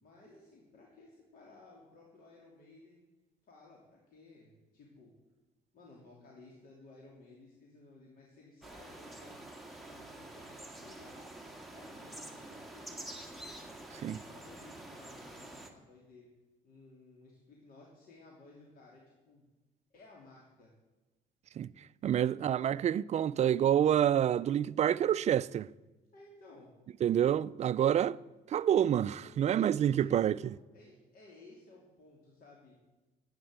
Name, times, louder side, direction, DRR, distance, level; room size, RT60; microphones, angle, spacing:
voice 1, 0.0-3.0 3.4-5.1 5.7-11.3 11.7-13.2 13.9-16.3 16.6-19.5 19.9-20.7 22.2-22.8 26.1-26.7 29.2-32.8, left 2 dB, 60° left, 2.9 m, -57 dB
sound 1, 8.6-15.7, right 1 dB, ahead, 1.6 m, -48 dB
voice 2, 22.0-25.7 27.0-28.2 28.5-30.5, right 10 dB, 40° right, 0.4 m, -28 dB
11.0 x 8.9 x 8.2 m
cardioid pair, 110°, 17 cm